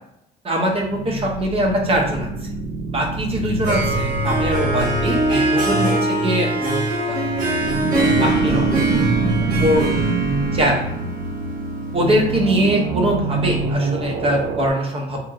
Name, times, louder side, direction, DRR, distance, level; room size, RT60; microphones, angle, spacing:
voice 1, 0.4-2.3 2.9-7.3 7.9-8.8 9.4-9.9 10.5-10.8 11.9-15.2, equal, 35° right, 0 dB, 0.7 m, -22 dB
sound 1, 0.7-14.7, right 3 dB, 85° right, 0.4 m, -25 dB
Harp, 3.4-12.4, right 2 dB, 60° right, 1.0 m, -23 dB
2.9 x 2.5 x 2.4 m, 0.78 s
cardioid pair, 110°, 17 cm